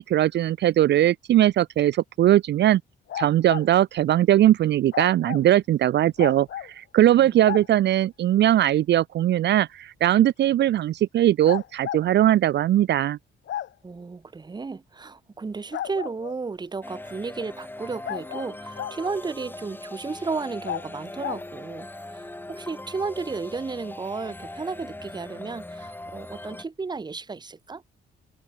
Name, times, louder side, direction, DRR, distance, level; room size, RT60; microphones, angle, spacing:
voice 1, 0.0-2.8 3.1-13.2, right 12 dB, 60° right, 0.5 m, -20 dB
sound 1, 3.1-3.7 4.9-5.4 6.2-6.7 7.4-7.7 9.4-9.5 11.4-12.0 13.5-13.7 15.7-16.4 18.0-19.0 20.6-20.8 21.2-21.4, left 11 dB, 65° left, 1.3 m, -33 dB
voice 2, 13.8-27.8, right 4 dB, 20° right, 1.0 m, -33 dB
sound 2, 16.8-26.6, left 1 dB, 10° left, 2.6 m, -40 dB
cardioid pair, 90°, 20 cm